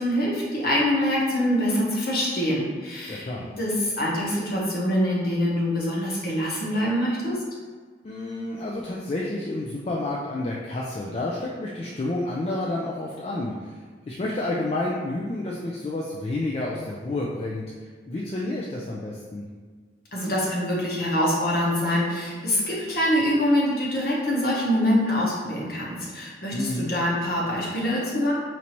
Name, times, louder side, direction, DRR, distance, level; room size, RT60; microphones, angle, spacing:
voice 1, 0.0-3.3 3.6-7.4 20.1-28.3, equal, 55° left, -5 dB, 0.9 m, -24 dB
voice 2, 3.1-3.5 8.0-13.8 14.1-19.4 26.5-26.9, left 2 dB, 35° left, -4 dB, 0.3 m, -30 dB
4.4 x 2.6 x 2.9 m, 1.5 s
head